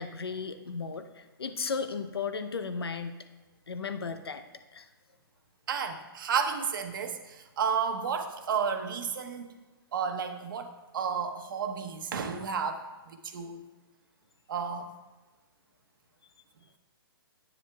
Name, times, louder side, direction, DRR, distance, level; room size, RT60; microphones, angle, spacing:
voice 1, 0.0-3.2 3.7-4.4 4.7-4.9, left 5 dB, 90° left, 9 dB, 0.8 m, -35 dB
voice 2, 5.7-9.5 9.9-13.6 14.5-14.9, right 6 dB, 60° right, 7 dB, 1.0 m, -32 dB
10.0 x 9.4 x 2.3 m, 1.1 s
hypercardioid pair, 145°, 13 cm